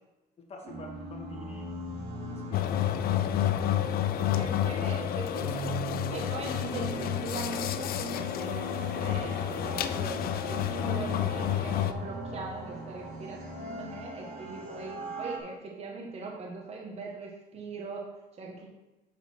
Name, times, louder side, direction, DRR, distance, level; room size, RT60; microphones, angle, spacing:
voice 1, 0.4-1.7 2.3-3.4 4.7-5.7 10.8-11.2, left 2 dB, 40° left, 2 dB, 1.5 m, -47 dB
sound 1, 0.6-15.4, right 2 dB, 75° right, 2.5 m, -40 dB
sound 2, 2.5-11.9, left 11 dB, 60° left, 0.5 m, -30 dB
voice 2, 4.2-5.5 6.1-18.7, right 3 dB, 40° right, -1 dB, 1.4 m, -41 dB
7.4 x 4.0 x 5.8 m, 1.0 s
cardioid pair, 110°, 17 cm